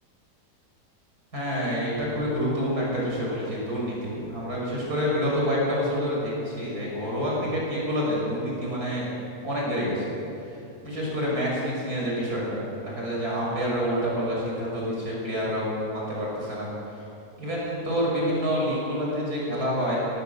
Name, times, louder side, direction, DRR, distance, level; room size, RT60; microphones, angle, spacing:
voice 1, 1.3-9.1 9.4-10.1 10.4-10.6 10.8-16.7 17.4-20.1, equal, 70° right, -4 dB, 6.9 m, -27 dB
26.0 x 19.5 x 6.9 m, 2.9 s
omnidirectional pair, 1.7 m